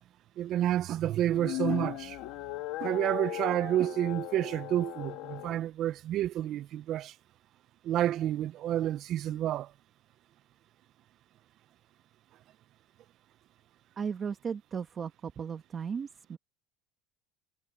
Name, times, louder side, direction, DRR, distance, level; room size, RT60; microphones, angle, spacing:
voice 1, 0.4-2.2 2.8-7.1 7.8-9.7, right 12 dB, 35° right, 0.4 m, -29 dB
sound 1, 1.2-5.6, left 17 dB, 55° left, 1.2 m, -37 dB
voice 2, 14.0-16.4, right 6 dB, 20° right, 1.3 m, -36 dB
cardioid pair, 180°, 0 cm